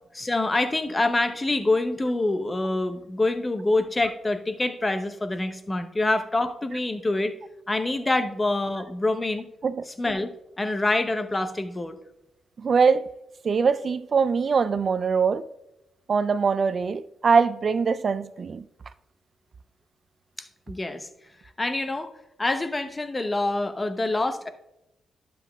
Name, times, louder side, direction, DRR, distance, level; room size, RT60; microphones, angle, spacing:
voice 1, 0.1-7.3 7.7-9.5 9.9-12.0 20.4-21.1 21.6-22.1 22.4-24.5, left 2 dB, 25° left, 0.8 m, -26 dB
voice 2, 12.6-13.1 13.4-15.4 16.1-18.6, right 5 dB, 55° right, 0.4 m, -22 dB
11.5 x 7.6 x 2.3 m
hypercardioid pair, 45°, 0 cm